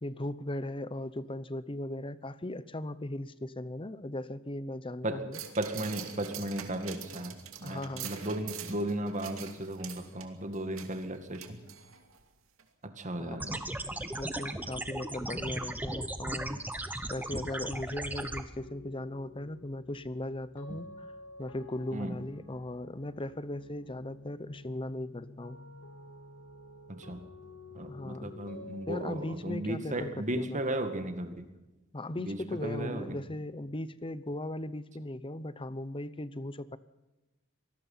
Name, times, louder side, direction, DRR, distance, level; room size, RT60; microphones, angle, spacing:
voice 1, 0.0-5.4 7.6-8.1 13.2-13.4 13.9-16.6 17.1-21.1 21.4-25.6 27.9-28.3 28.9-30.6 31.9-36.8, left 1 dB, 25° left, 15 dB, 0.8 m, -38 dB
sound 1, 5.3-12.2 12.6-12.7, right 8 dB, 80° right, 2.5 m, -45 dB
voice 2, 5.6-11.6 12.8-13.6 20.7-20.8 21.9-22.2 26.9-27.3 27.7-31.5 32.2-33.2, right 1 dB, 35° right, 8 dB, 2.1 m, -35 dB
sound 2, 13.4-18.4, right 1 dB, 10° right, 1.2 m, -36 dB
sound 3, 18.6-30.0, left 2 dB, 80° left, 2.5 m, -51 dB
25.0 x 18.5 x 5.7 m, 1.0 s
head